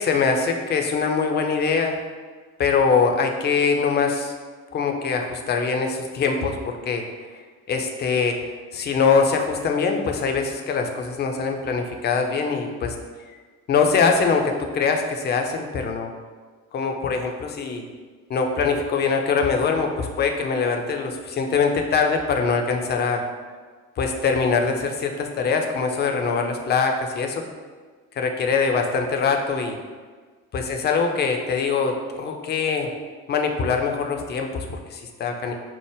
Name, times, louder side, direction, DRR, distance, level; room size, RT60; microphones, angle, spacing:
voice 1, 0.0-2.0 2.6-4.3 4.7-7.0 7.7-8.4 8.7-12.9 13.7-16.1 16.7-17.8 18.3-23.2 24.0-27.4 28.2-29.8 30.5-32.9 33.3-35.5, left 5 dB, 25° left, 4 dB, 0.4 m, -23 dB
4.6 x 2.1 x 3.3 m, 1.5 s
figure-of-eight pair, 45°, 42 cm